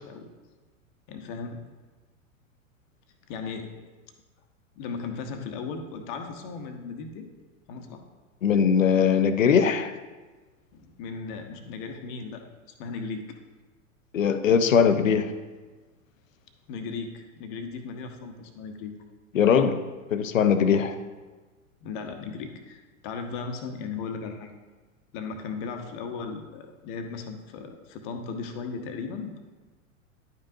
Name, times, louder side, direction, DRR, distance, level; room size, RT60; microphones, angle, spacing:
voice 1, 1.1-1.6 3.3-3.8 4.8-7.3 7.7-8.0 10.7-12.5 12.8-13.4 16.7-18.9 20.6-20.9 21.8-24.5 25.1-29.4, left 5 dB, 40° left, 5 dB, 0.9 m, -36 dB
voice 2, 8.4-9.9 14.1-15.3 19.3-19.8 20.1-20.9, left 7 dB, 70° left, 10 dB, 0.7 m, -21 dB
10.5 x 5.4 x 2.7 m, 1.3 s
figure-of-eight pair, 95°, 41 cm